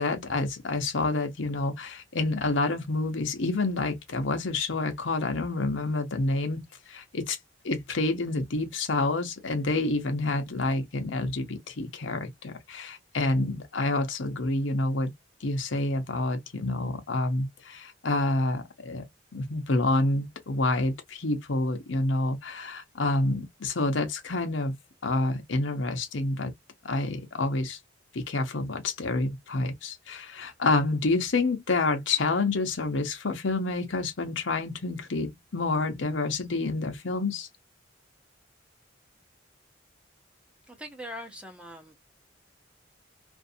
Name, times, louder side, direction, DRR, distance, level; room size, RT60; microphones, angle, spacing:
voice 1, 0.0-6.6 6.9-7.4 7.6-15.1 15.4-19.0 19.3-24.7 25.0-26.5 26.8-27.8 28.1-37.5, left 2 dB, 85° left, 0.8 m, -28 dB
voice 2, 40.7-42.0, equal, 5° right, 0.7 m, -41 dB
2.6 x 2.3 x 2.6 m
head